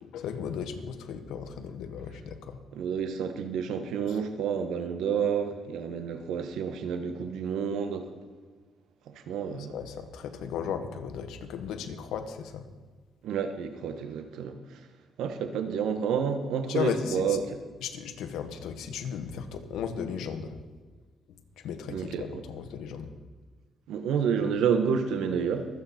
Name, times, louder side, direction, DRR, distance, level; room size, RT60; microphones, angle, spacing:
voice 1, 0.0-2.6 9.7-12.6 16.7-17.4 17.8-20.5 21.6-23.1, left 7 dB, 85° left, 8 dB, 1.4 m, -35 dB
voice 2, 2.7-8.1 9.1-9.7 13.2-14.6 15.2-17.6 21.9-22.4 23.9-25.7, right 7 dB, 85° right, 8 dB, 1.3 m, -29 dB
24.5 x 8.8 x 4.4 m, 1.4 s
cardioid pair, 90°, 0 cm